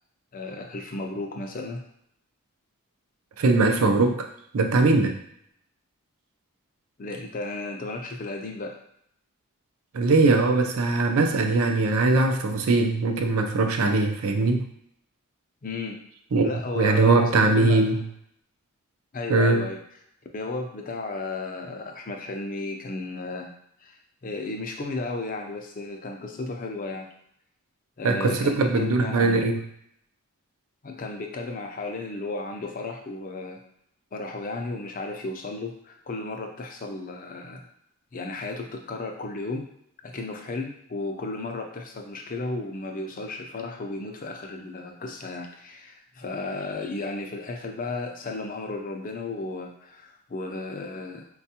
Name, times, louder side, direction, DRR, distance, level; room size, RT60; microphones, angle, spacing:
voice 1, 0.3-1.8 7.0-8.8 15.6-16.0 16.4-18.0 19.1-19.8 20.3-23.5 23.8-27.1 28.0-29.4 30.8-33.6 34.1-37.7 38.1-39.7 40.0-51.3, left 2 dB, 40° left, 3 dB, 0.4 m, -34 dB
voice 2, 3.4-4.3 4.5-5.2 9.9-14.7 16.3-16.5 16.8-18.0 19.3-19.6 28.0-29.6, right 3 dB, 75° right, 5 dB, 0.5 m, -21 dB
4.3 x 2.3 x 2.8 m, 0.72 s
head